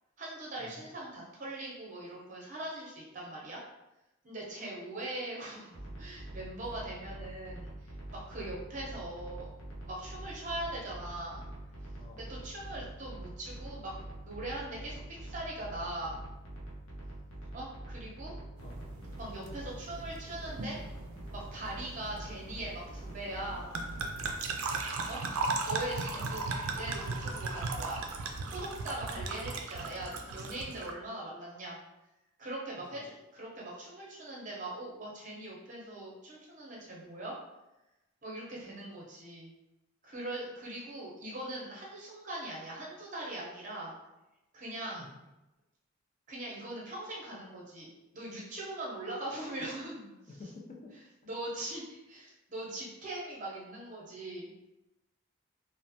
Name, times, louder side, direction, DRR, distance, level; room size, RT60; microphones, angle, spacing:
voice 1, 0.2-3.6 4.2-9.5 9.8-11.5 12.2-13.9 14.2-16.2 17.5-18.3 19.2-20.8 21.3-23.8 25.1-25.2 25.6-28.0 28.5-31.8 32.4-37.3 38.2-39.5 40.0-43.9 44.5-45.1 46.3-47.9 48.1-50.1 51.2-54.5, right 1 dB, 35° right, -4 dB, 0.8 m, -41 dB
sound 1, 5.7-24.3, right 1 dB, 75° left, 0.7 m, -45 dB
sound 2, 18.6-30.9, right 3 dB, 80° right, 0.4 m, -38 dB
voice 2, 50.3-50.9, left 3 dB, 35° left, -1 dB, 0.4 m, -49 dB
3.1 x 2.1 x 2.7 m, 0.97 s
head